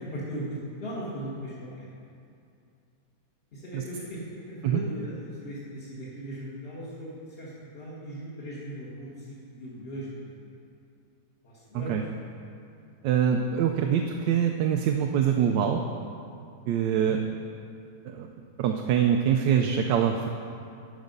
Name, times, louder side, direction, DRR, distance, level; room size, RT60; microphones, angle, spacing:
voice 1, 0.0-1.9 3.5-7.1 7.4-10.3 11.4-11.9 16.7-17.1 19.5-19.7, equal, 35° left, -8 dB, 1.5 m, -38 dB
voice 2, 13.0-15.8 16.7-17.2 18.0-18.3 18.6-20.3, right 8 dB, 85° right, 3 dB, 1.2 m, -24 dB
13.0 x 5.1 x 5.3 m, 2.5 s
omnidirectional pair, 1.9 m